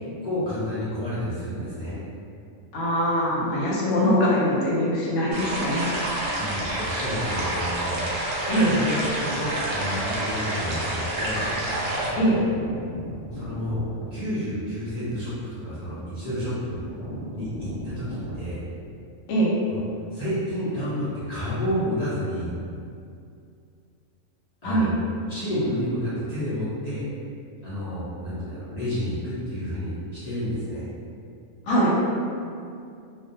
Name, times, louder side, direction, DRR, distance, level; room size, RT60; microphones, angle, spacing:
voice 1, 0.2-2.0 6.3-8.0 8.4-11.4 13.3-13.8 14.1-16.8 17.3-18.6 19.7-19.8 20.1-22.5 24.6-24.9 25.3-27.0 27.6-30.9, equal, 45° left, -13 dB, 0.5 m, -30 dB
voice 2, 2.7-5.9 8.5-8.7 12.2-12.4 19.3-19.5 24.6-24.9 31.7-31.9, equal, 85° left, -5 dB, 1.0 m, -22 dB
sound 1, 5.3-12.1, right 1 dB, 75° right, 0.9 m, -28 dB
sound 2, 8.0-8.2 9.3-9.4 10.1-10.4 10.7-10.8 11.1-18.5, equal, 30° right, 0.9 m, -38 dB
2.3 x 2.1 x 2.6 m, 2.4 s
omnidirectional pair, 1.4 m